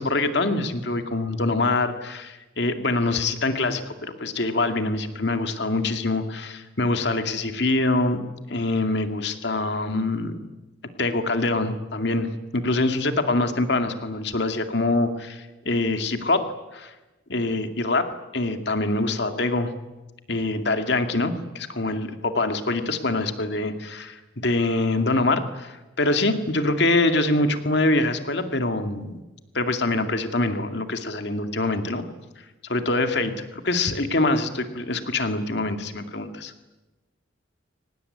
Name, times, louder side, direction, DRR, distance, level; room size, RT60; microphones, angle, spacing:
voice 1, 0.0-8.2 8.5-10.4 11.0-12.3 12.5-16.5 16.7-16.9 17.3-19.7 20.3-29.1 29.5-32.0 32.7-36.5, left 2 dB, 60° left, 7 dB, 2.3 m, -24 dB
24.5 x 19.0 x 9.8 m, 1.1 s
head